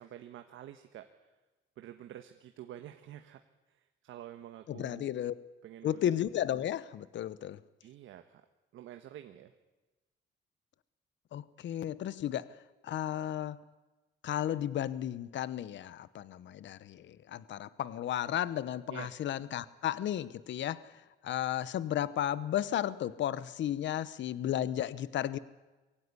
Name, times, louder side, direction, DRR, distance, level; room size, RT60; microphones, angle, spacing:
voice 1, 0.0-1.3 1.8-3.4 3.7-5.2 5.6-6.0 7.8-8.4 8.7-9.5 18.9-19.1, right 12 dB, 80° right, 7 dB, 1.3 m, -48 dB
voice 2, 4.7-5.3 5.8-7.6 11.3-12.6 12.8-13.6 14.2-25.4, left 11 dB, 65° left, 17 dB, 0.9 m, -34 dB
22.5 x 16.5 x 9.6 m, 1.2 s
cardioid pair, 90°, 20 cm